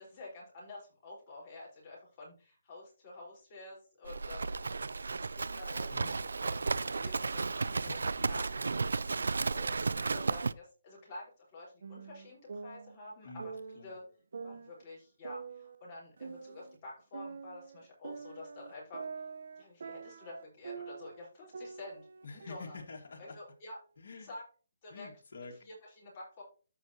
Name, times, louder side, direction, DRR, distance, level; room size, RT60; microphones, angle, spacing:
voice 1, 0.0-4.5 5.3-8.8 9.5-13.6 13.8-14.0 14.4-19.1 19.6-22.1 22.3-22.8 23.2-23.8 24.2-24.4 24.8-25.1 25.4-26.4, left 2 dB, 25° left, -5 dB, 4.5 m, -49 dB
Livestock farm animals working animals, 4.1-10.5, right 4 dB, 80° right, 0.4 m, -33 dB
voice 2, 7.6-8.3 13.2-13.5 13.8-13.9 22.2-23.4 24.0-24.3 24.9-25.6, left 3 dB, 60° left, 3 dB, 1.9 m, -48 dB
sound 1, 11.8-13.9 14.3-16.8 17.1-21.2 21.5-23.5, right 5 dB, 65° right, 0.9 m, -46 dB
14.0 x 5.3 x 2.9 m, 0.36 s
hypercardioid pair, 165°, 0 cm